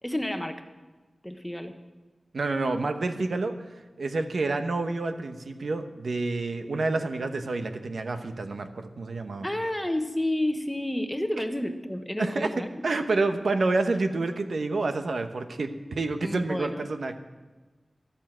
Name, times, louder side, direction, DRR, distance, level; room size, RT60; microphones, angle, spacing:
voice 1, 0.0-0.6 1.2-1.8 9.4-12.7 16.2-16.9, left 1 dB, 10° left, 7 dB, 1.2 m, -30 dB
voice 2, 2.3-3.6 4.0-9.5 12.2-12.5 12.8-17.2, right 3 dB, 75° right, 7 dB, 1.1 m, -28 dB
13.5 x 13.0 x 6.2 m, 1.3 s
wide cardioid pair, 85°, 0 cm